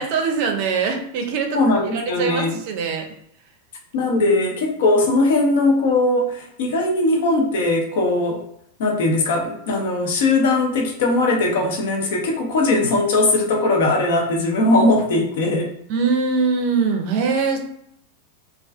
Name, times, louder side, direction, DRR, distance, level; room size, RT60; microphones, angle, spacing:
voice 1, 0.0-1.6 1.9-3.1 15.9-17.6, right 5 dB, 45° right, 3 dB, 0.5 m, -22 dB
voice 2, 1.5-2.5 3.9-8.4 8.8-15.7, left 2 dB, 55° left, 1 dB, 0.6 m, -19 dB
2.3 x 2.3 x 2.3 m, 0.72 s
figure-of-eight pair, 90°, 0 cm